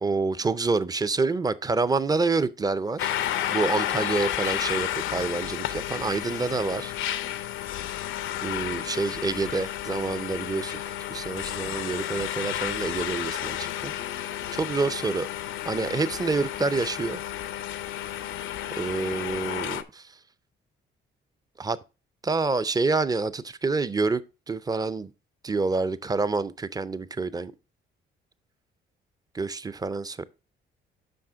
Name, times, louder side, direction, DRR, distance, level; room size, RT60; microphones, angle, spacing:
voice 1, 0.0-3.1 3.5-6.9 8.4-10.8 11.1-13.9 14.5-15.3 15.7-17.2 18.8-20.1 21.6-21.8 22.2-24.2 24.5-25.1 25.4-27.5 29.3-30.2, right 3 dB, 20° right, 0.4 m, -27 dB
sound 1, 3.0-19.8, left 12 dB, 80° left, 0.6 m, -32 dB
7.7 x 5.5 x 3.5 m
cardioid pair, 90°, 20 cm